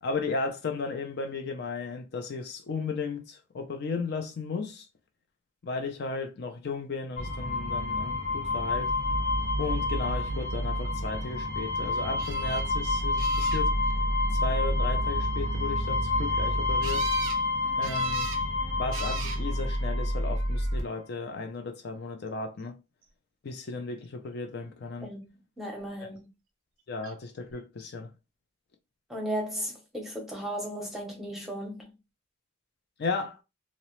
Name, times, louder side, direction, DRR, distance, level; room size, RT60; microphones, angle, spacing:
voice 1, 0.0-4.9 5.6-8.9 9.6-13.8 14.3-17.1 17.7-18.3 18.8-22.8 23.4-25.1 26.0-26.1 26.9-28.1 33.0-33.4, left 4 dB, 55° left, 0.4 m, -35 dB
sound 1, 7.2-20.6, left 3 dB, 35° left, 0.8 m, -30 dB
sound 2, 9.1-20.8, right 1 dB, 80° left, 0.9 m, -32 dB
sound 3, 12.2-12.6 13.2-13.9 16.8-17.4 17.8-18.4 18.9-19.4 20.3-20.8 27.0-27.1 27.5-27.6, right 8 dB, 75° right, 0.4 m, -39 dB
voice 2, 25.6-26.3 29.1-31.9, equal, ahead, 0.8 m, -35 dB
2.8 x 2.0 x 2.9 m
head